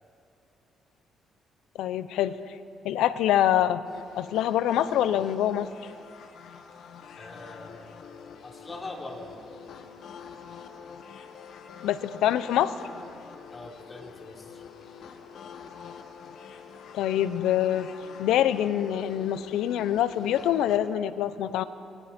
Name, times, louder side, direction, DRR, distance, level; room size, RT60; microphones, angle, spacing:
voice 1, 1.8-2.4 2.8-3.8 4.1-5.7 11.8-12.7 16.9-17.9 18.2-21.6, left 11 dB, 90° left, 14 dB, 0.8 m, -25 dB
sound 1, 3.8-20.8, left 6 dB, 75° left, 1.6 m, -46 dB
voice 2, 7.2-8.0 8.4-9.3 9.8-9.9 13.5-14.6, left 2 dB, 30° left, 0 dB, 3.9 m, -42 dB
29.5 x 23.0 x 4.4 m, 2.5 s
cardioid pair, 90°, 0 cm